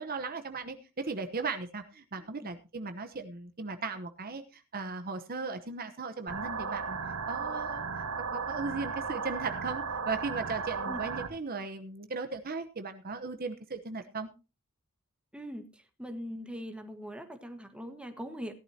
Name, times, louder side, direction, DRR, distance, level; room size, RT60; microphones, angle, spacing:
voice 1, 0.0-7.0 7.3-7.8 8.3-14.3, right 4 dB, 45° right, 8 dB, 1.0 m, -37 dB
sound 1, 6.3-11.3, right 5 dB, 70° right, 1.6 m, -35 dB
voice 2, 15.3-18.5, equal, 5° right, 6 dB, 1.5 m, -41 dB
17.0 x 11.5 x 2.8 m, 0.28 s
head